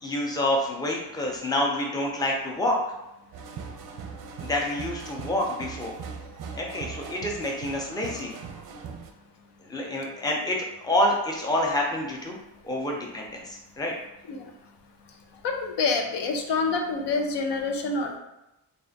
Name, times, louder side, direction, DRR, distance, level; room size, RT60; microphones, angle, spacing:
voice 1, 0.0-2.8 4.4-5.9 6.5-8.3 9.6-12.4 12.6-13.9, left 1 dB, 10° left, -1 dB, 0.5 m, -27 dB
sound 1, 3.3-9.1, right 5 dB, 50° right, 0.5 m, -39 dB
voice 2, 15.4-18.2, left 4 dB, 90° left, 3 dB, 0.7 m, -27 dB
3.3 x 2.5 x 3.9 m, 0.92 s
wide cardioid pair, 150°, 41 cm